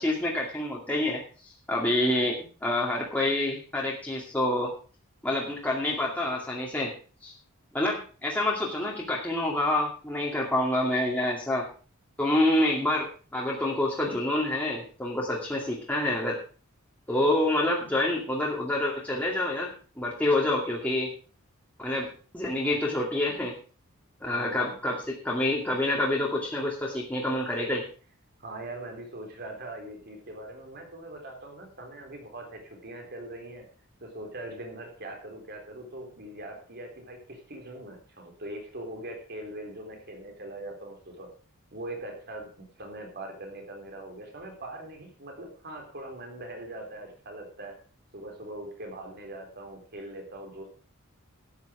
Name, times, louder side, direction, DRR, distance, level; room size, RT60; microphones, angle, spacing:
voice 1, 0.0-4.7 5.2-6.9 7.2-7.3 7.7-11.7 12.2-16.4 17.1-21.1 21.8-23.5 24.2-24.9 25.2-27.8, left 1 dB, 5° left, -3 dB, 2.4 m, -27 dB
voice 2, 24.2-24.7 28.4-33.7 34.0-41.3 41.7-47.8 48.1-50.7, right 1 dB, 45° right, 3 dB, 3.8 m, -41 dB
12.5 x 9.6 x 5.0 m, 0.39 s
head